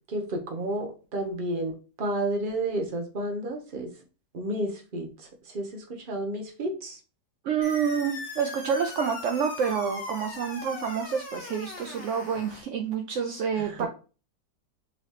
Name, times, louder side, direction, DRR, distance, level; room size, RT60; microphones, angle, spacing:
voice 1, 0.1-3.9 4.3-7.0 13.6-13.9, right 1 dB, 40° right, 3 dB, 0.9 m, -31 dB
voice 2, 7.4-13.9, right 6 dB, 70° right, 4 dB, 0.7 m, -28 dB
sound 1, 7.6-12.6, left 3 dB, 65° left, 2.0 m, -40 dB
5.5 x 2.9 x 3.2 m, 0.35 s
omnidirectional pair, 1.8 m